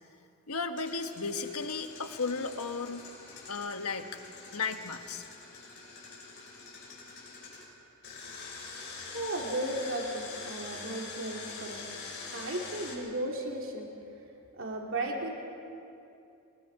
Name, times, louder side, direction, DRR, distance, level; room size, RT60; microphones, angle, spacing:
voice 1, 0.5-3.0 3.5-4.2 4.5-5.2, left 4 dB, 90° left, 7 dB, 1.4 m, -34 dB
Engine, 0.7-7.6 8.0-12.9, left 4 dB, 55° left, 6.6 m, -45 dB
voice 2, 9.1-11.8 12.3-13.9 14.6-15.3, right 1 dB, 60° right, -1 dB, 3.1 m, -35 dB
28.0 x 23.0 x 4.9 m, 2.6 s
head